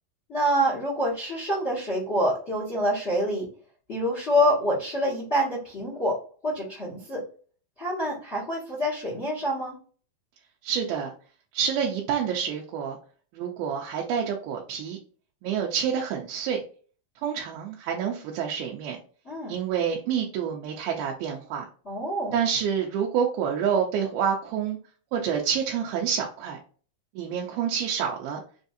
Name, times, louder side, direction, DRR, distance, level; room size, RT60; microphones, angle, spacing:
voice 1, 0.3-3.5 3.9-7.2 7.8-9.8 19.2-19.5 21.8-22.4, equal, 50° left, -4 dB, 0.7 m, -26 dB
voice 2, 10.6-11.1 11.5-13.0 13.3-15.0 15.4-16.6 17.2-19.0 19.5-21.7 22.3-24.8 25.1-26.6 27.2-28.4, right 7 dB, 90° right, -1 dB, 2.6 m, -28 dB
6.4 x 2.7 x 2.4 m, 0.41 s
omnidirectional pair, 4.2 m